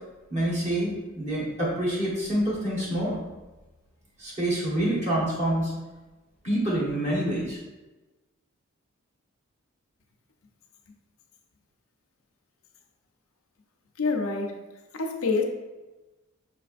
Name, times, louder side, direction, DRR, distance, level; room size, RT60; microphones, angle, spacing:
voice 1, 0.3-3.2 4.2-5.7 6.4-7.6, right 1 dB, 30° right, -5 dB, 1.2 m, -27 dB
voice 2, 14.0-14.6 14.9-15.4, left 4 dB, 70° left, 3 dB, 0.6 m, -26 dB
5.7 x 3.2 x 2.5 m, 1.2 s
head